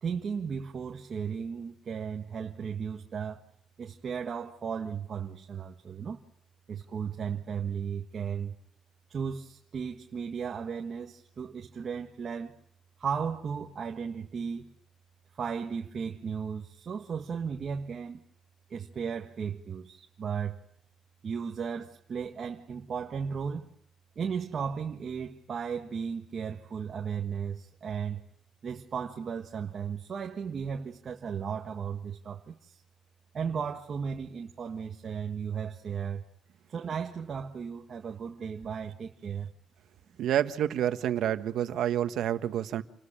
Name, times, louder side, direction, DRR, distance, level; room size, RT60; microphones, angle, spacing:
voice 1, 0.0-3.4 3.8-6.2 6.7-8.5 9.1-12.6 13.0-14.7 15.4-18.2 18.7-20.6 21.2-23.7 24.1-28.2 28.6-32.8 33.3-36.2 36.7-39.5, right 6 dB, 40° right, 1.5 m, -35 dB
voice 2, 40.2-42.8, right 11 dB, 75° right, 1.5 m, -28 dB
29.0 x 20.5 x 8.8 m
cardioid pair, 175°, 0 cm